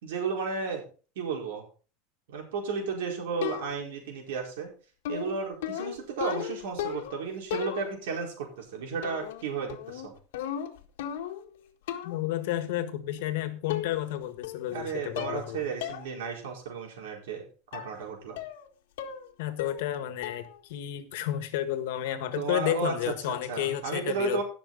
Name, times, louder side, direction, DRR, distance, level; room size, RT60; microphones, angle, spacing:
voice 1, 0.0-0.8 1.2-1.7 2.3-4.7 5.1-10.1 14.7-17.4 17.7-18.4 22.3-22.9 23.3-24.4, right 5 dB, 85° right, 1 dB, 4.4 m, -33 dB
sound 1, 3.4-4.0 5.0-7.2 7.5-8.2 9.0-9.4 9.7-11.5 11.9-12.3 13.2-13.3 13.7-14.2 14.4-14.8 15.2-15.5 15.8-16.0 16.4-16.5 17.7-18.0 18.4-18.7 19.0-19.3 19.6-20.0 20.2-20.6, left 10 dB, 85° left, 1.6 m, -36 dB
voice 2, 12.0-15.6 19.4-24.4, left 12 dB, 70° left, 10 dB, 1.5 m, -31 dB
17.5 x 6.3 x 3.9 m, 0.38 s
supercardioid pair, 170°, 0 cm